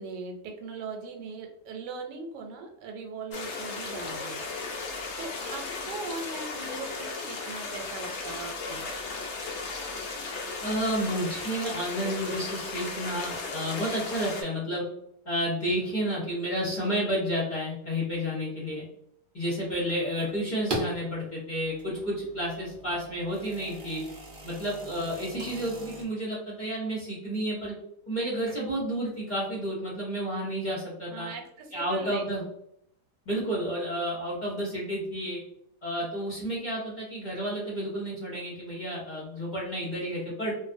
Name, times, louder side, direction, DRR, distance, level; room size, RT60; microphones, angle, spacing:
voice 1, 0.0-4.5 5.2-8.9 31.1-32.5, right 4 dB, 85° right, 3 dB, 1.2 m, -40 dB
sound 1, 3.3-14.4, left 3 dB, 75° left, 0.6 m, -36 dB
voice 2, 10.6-14.8 15.2-18.8 19.3-24.0 24.4-27.7 28.1-31.3 31.7-32.4 33.3-35.4 35.8-40.5, equal, 35° left, -7 dB, 0.8 m, -31 dB
sound 2, 19.9-21.0 21.6-26.0, right 2 dB, 70° right, 0.5 m, -39 dB
2.6 x 2.5 x 2.5 m, 0.75 s
omnidirectional pair, 1.8 m